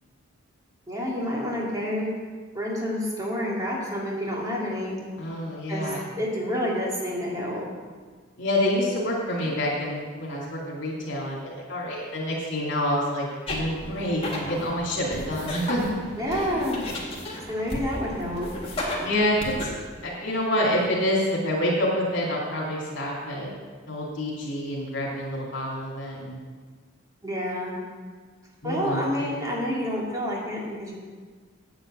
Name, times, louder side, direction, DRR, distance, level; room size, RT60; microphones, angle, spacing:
voice 1, 0.9-2.1 2.5-5.0 5.7-7.6 16.2-16.8 17.5-18.5 27.2-27.8 28.6-30.9, equal, 15° right, -5 dB, 2.6 m, -28 dB
voice 2, 5.2-6.0 8.4-16.0 16.3-16.5 19.0-19.5 20.0-23.5 23.9-26.4 28.6-29.3, left 1 dB, 65° left, -5 dB, 2.5 m, -27 dB
sound 1, 13.5-19.6, left 1 dB, 30° left, 1.9 m, -34 dB
8.9 x 7.9 x 7.6 m, 1.5 s
head